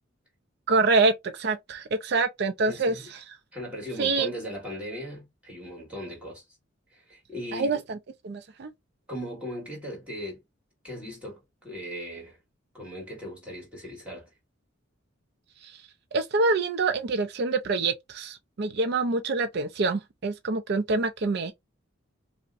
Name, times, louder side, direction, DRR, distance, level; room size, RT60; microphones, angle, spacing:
voice 1, 0.7-3.2 4.0-4.3 7.5-8.0 8.2-8.7 15.6-15.8 16.1-21.5, right 3 dB, 55° right, 0.4 m, -26 dB
voice 2, 2.6-3.1 3.5-6.4 6.9-7.8 9.1-10.4 10.8-12.4 12.7-14.3, equal, 5° right, 1.9 m, -38 dB
5.2 x 2.1 x 2.5 m
head